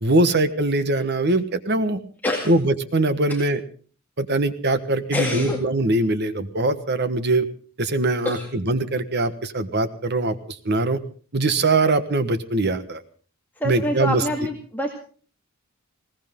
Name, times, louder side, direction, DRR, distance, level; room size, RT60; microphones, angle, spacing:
voice 1, 0.0-2.0 2.4-3.6 4.2-7.5 7.8-11.0 11.3-13.0 13.6-14.5, right 2 dB, 50° right, 11 dB, 1.3 m, -22 dB
voice 2, 5.1-5.6 8.3-8.5 13.6-14.9, left 1 dB, 10° left, -1 dB, 2.1 m, -26 dB
21.0 x 18.0 x 3.7 m, 0.41 s
head